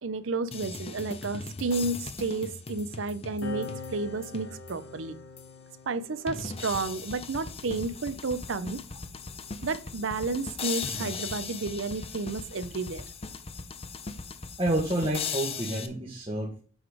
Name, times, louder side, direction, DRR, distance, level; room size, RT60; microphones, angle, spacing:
voice 1, 0.0-5.2 5.9-8.8 9.6-13.0, right 3 dB, 70° right, 14 dB, 0.6 m, -31 dB
sound 1, 0.5-4.9 5.4-5.5 6.3-15.9, left 5 dB, 30° left, 0.6 m, -38 dB
sound 2, 3.4-10.3 11.3-13.1, left 4 dB, 85° left, 0.9 m, -46 dB
voice 2, 14.6-16.6, right 1 dB, 25° right, -2 dB, 1.4 m, -29 dB
7.8 x 4.0 x 4.9 m, 0.42 s
head